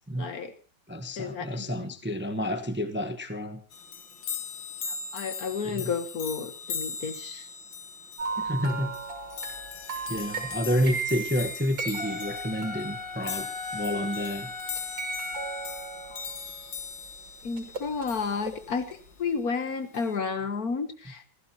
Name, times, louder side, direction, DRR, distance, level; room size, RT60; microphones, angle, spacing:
voice 1, 0.2-0.5 1.2-1.9 5.1-7.5 16.1-16.2 17.4-21.3, left 5 dB, 55° left, 10 dB, 1.7 m, -32 dB
voice 2, 0.9-3.6 5.6-5.9 8.4-8.9 10.1-14.5, equal, 10° right, 7 dB, 0.9 m, -30 dB
sound 1, 3.7-18.7 19.9-20.2, left 6 dB, 85° left, 2.0 m, -39 dB
sound 2, 8.2-14.1 14.7-16.8 17.6-18.5 18.9-19.0, right 4 dB, 85° right, 3.7 m, -36 dB
Wind instrument woodwind instrument, 11.8-16.2, left 3 dB, 25° left, 2.3 m, -39 dB
28.5 x 15.0 x 3.0 m, 0.35 s
omnidirectional pair, 2.0 m